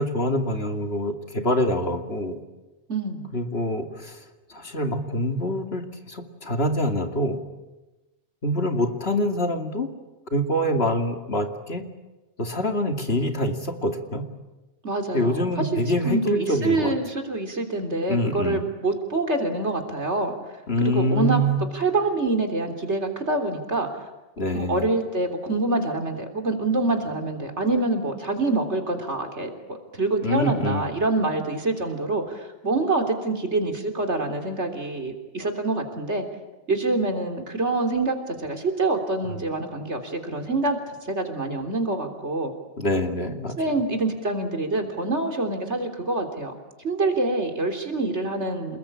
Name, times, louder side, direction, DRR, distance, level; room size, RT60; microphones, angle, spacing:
voice 1, 0.0-2.4 3.3-7.4 8.4-9.9 10.3-11.8 12.4-14.3 15.1-16.9 18.1-18.6 20.7-21.6 24.4-24.9 30.2-30.9 39.3-39.4 42.8-43.5, left 1 dB, 60° left, 5 dB, 2.8 m, -25 dB
voice 2, 2.9-3.3 14.8-20.4 20.8-21.4 21.7-23.9 24.5-36.2 36.7-42.5 43.6-46.5 46.8-48.8, right 2 dB, 75° right, 5 dB, 3.8 m, -26 dB
28.5 x 21.0 x 8.8 m, 1.1 s
omnidirectional pair, 1.2 m